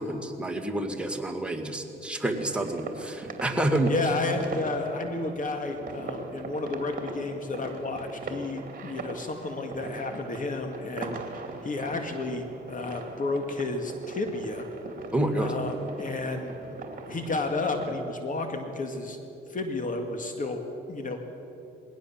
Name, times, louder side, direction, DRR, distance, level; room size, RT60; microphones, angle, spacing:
voice 1, 0.0-3.9 15.1-15.5, right 1 dB, 5° right, 3 dB, 2.1 m, -28 dB
sound 1, 2.3-17.9, right 3 dB, 45° right, 2.7 m, -41 dB
voice 2, 3.9-11.2 11.6-14.7 15.3-16.5 17.1-19.2 19.5-21.2, left 3 dB, 40° left, 5 dB, 2.2 m, -32 dB
20.0 x 17.5 x 7.4 m, 2.8 s
cardioid pair, 90°, 20 cm